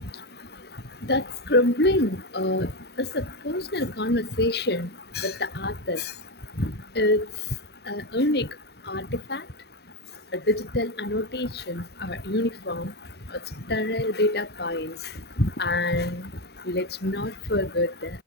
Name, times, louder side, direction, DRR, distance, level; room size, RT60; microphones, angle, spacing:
voice 1, 1.5-2.7 3.1-4.9 5.1-6.0 6.6-7.3 7.9-8.5 8.9-9.4 10.5-12.9 13.7-14.9 15.4-16.2 16.7-18.1, left 1 dB, 65° left, 5.0 m, -25 dB
head